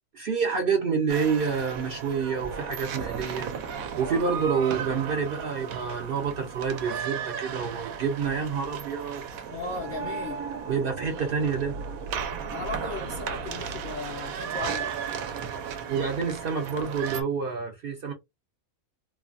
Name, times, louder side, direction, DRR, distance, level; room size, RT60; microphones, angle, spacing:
voice 1, 0.1-3.5 4.0-9.2 10.7-11.8 15.9-18.1, right 6 dB, 60° right, 0.6 m, -28 dB
sound 1, 1.1-17.2, right 7 dB, 85° right, 1.0 m, -35 dB
voice 2, 9.5-10.4 12.5-14.9, left 3 dB, 60° left, 0.5 m, -36 dB
3.2 x 2.1 x 2.4 m
omnidirectional pair, 1.4 m